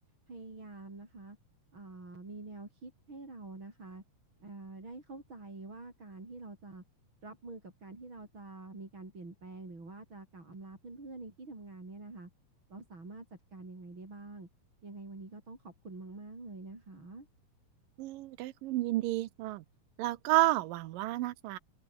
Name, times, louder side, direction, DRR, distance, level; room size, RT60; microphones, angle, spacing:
voice 1, 0.3-1.4 1.7-4.0 4.4-6.8 7.2-12.3 12.7-14.5 14.8-17.3, right 3 dB, 35° right, 7.0 m, -47 dB
voice 2, 18.0-19.6 20.0-21.6, right 16 dB, 80° right, 2.5 m, -31 dB
open air
omnidirectional pair, 4.0 m